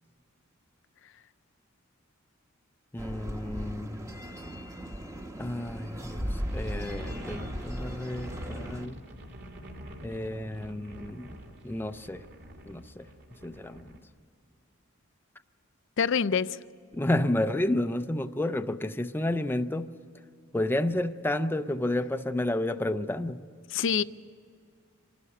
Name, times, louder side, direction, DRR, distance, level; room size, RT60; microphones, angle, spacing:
voice 1, 2.9-4.2 5.4-9.0 10.0-11.4 11.6-12.3 12.7-14.0 16.9-20.0 20.5-23.5, left 1 dB, 10° left, 0.4 m, -31 dB
sound 1, 3.0-8.9, equal, 15° right, 0.9 m, -38 dB
sound 2, 6.4-14.0, equal, 55° right, 2.2 m, -44 dB
voice 2, 16.0-16.6 23.7-24.0, left 6 dB, 65° left, 0.5 m, -25 dB
26.0 x 12.0 x 9.9 m
head